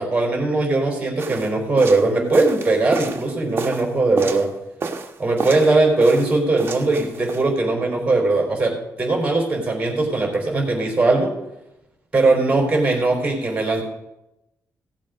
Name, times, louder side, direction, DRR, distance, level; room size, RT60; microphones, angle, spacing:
voice 1, 0.0-4.5 5.2-8.7 9.0-11.3 12.1-13.8, right 2 dB, 20° right, 0 dB, 4.2 m, -19 dB
sound 1, 1.2-4.5 4.8-5.8 6.0-7.5, right 4 dB, 40° right, 1.2 m, -31 dB
17.0 x 7.4 x 5.2 m, 0.87 s
wide cardioid pair, 140°, 6 cm